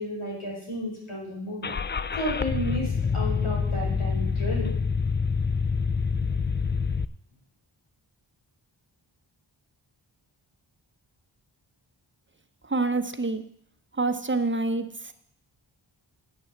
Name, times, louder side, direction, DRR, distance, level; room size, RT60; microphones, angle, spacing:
voice 1, 0.0-1.7 2.2-4.7, equal, 85° left, -4 dB, 4.8 m, -32 dB
Car / Engine starting, 1.6-7.0, left 5 dB, 25° left, 0.4 m, -26 dB
voice 2, 12.6-13.4 13.9-15.1, right 3 dB, 25° right, 9 dB, 1.0 m, -27 dB
8.5 x 6.2 x 7.8 m, 0.68 s
wide cardioid pair, 45°, 49 cm